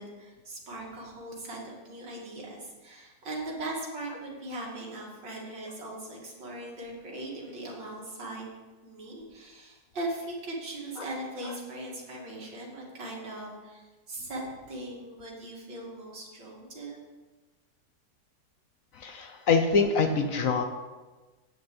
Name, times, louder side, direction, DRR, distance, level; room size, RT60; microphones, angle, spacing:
voice 1, 0.0-8.6 8.8-14.4 14.7-17.0, right 1 dB, 90° right, -3 dB, 3.0 m, -39 dB
voice 2, 18.9-20.6, left 4 dB, 60° left, 6 dB, 1.1 m, -25 dB
9.7 x 5.9 x 7.0 m, 1.2 s
omnidirectional pair, 1.9 m